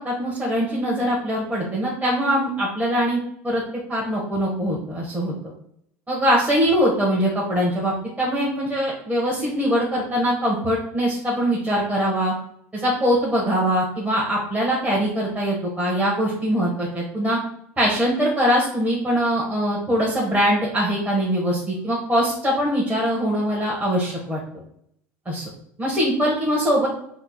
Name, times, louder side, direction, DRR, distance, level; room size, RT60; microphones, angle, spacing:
voice 1, 0.0-3.6 3.9-5.3 6.1-12.3 12.7-17.4 17.8-24.4 25.2-25.5 25.8-26.9, equal, 20° right, -5 dB, 1.3 m, -22 dB
4.5 x 2.1 x 4.0 m, 0.71 s
hypercardioid pair, 80°, 7 cm